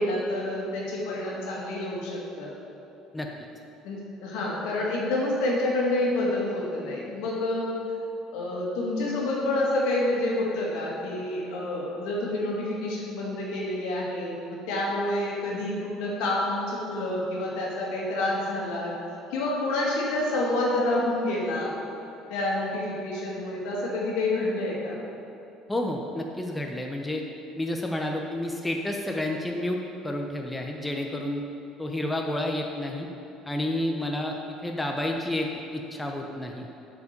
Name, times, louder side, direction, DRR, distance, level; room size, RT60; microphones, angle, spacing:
voice 1, 0.0-2.5 3.8-7.7 8.3-18.9 19.3-21.7 22.3-25.0, left 1 dB, 75° left, -4 dB, 2.1 m, -28 dB
voice 2, 25.7-27.2 27.6-31.4 31.8-33.1 33.4-36.7, left 1 dB, 10° left, 1 dB, 0.9 m, -30 dB
8.0 x 5.0 x 6.7 m, 2.9 s
hypercardioid pair, 70°, 0 cm